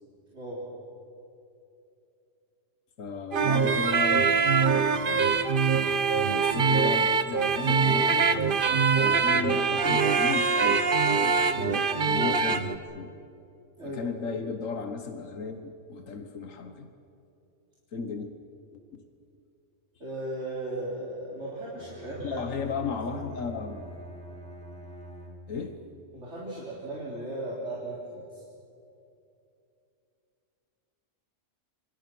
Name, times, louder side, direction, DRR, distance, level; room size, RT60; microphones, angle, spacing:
voice 1, 3.0-4.4 4.7-5.4 6.2-8.3 8.9-10.8 11.5-13.1 13.8-16.9 17.9-18.3 18.9-19.0 22.2-23.9 25.5-25.8, left 5 dB, 85° left, 7 dB, 1.6 m, -35 dB
sound 1, 3.3-12.7, right 5 dB, 45° right, 1.1 m, -23 dB
voice 2, 20.0-22.4 26.1-28.4, right 1 dB, 60° right, -6 dB, 3.9 m, -37 dB
Bowed string instrument, 21.7-25.8, equal, 5° left, 2.8 m, -44 dB
27.0 x 25.0 x 6.1 m, 2.7 s
omnidirectional pair, 1.3 m